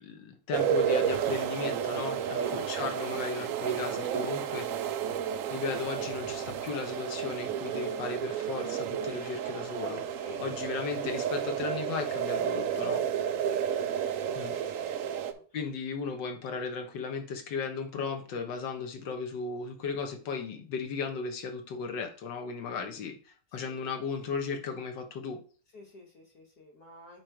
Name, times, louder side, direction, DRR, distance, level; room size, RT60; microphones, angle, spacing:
voice 1, 0.0-4.7 5.5-10.0 10.4-13.0 14.4-14.6 14.9-15.0 15.5-25.4, left 5 dB, 85° left, 5 dB, 1.8 m, -36 dB
sound 1, 0.5-15.3, right 8 dB, 65° right, 0.8 m, -31 dB
voice 2, 10.2-10.7 13.4-13.6 13.9-14.2 14.5-15.4 23.6-23.7 25.7-27.2, left 2 dB, 60° left, 0 dB, 1.5 m, -50 dB
8.8 x 3.2 x 4.5 m, 0.40 s
omnidirectional pair, 1.9 m